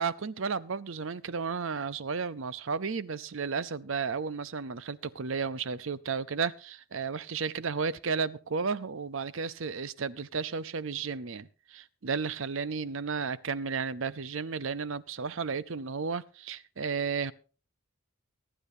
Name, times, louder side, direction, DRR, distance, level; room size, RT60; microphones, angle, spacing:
voice 1, 0.0-17.3, right 5 dB, 65° right, 0.6 m, -33 dB
24.5 x 10.0 x 2.7 m
head